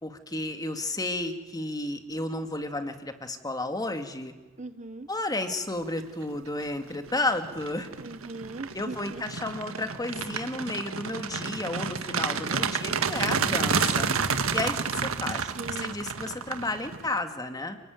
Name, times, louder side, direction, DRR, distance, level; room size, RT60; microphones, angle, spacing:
voice 1, 0.0-4.3 5.1-7.9 8.7-14.1 14.5-17.8, left 2 dB, 20° left, 7 dB, 2.1 m, -32 dB
voice 2, 4.6-5.1 8.0-9.2 15.6-15.9, right 2 dB, 35° right, 12 dB, 0.8 m, -39 dB
sound 1, 6.3-6.7 7.1-17.2, right 5 dB, 80° right, 1.6 m, -30 dB
29.5 x 20.5 x 9.4 m, 1.2 s
head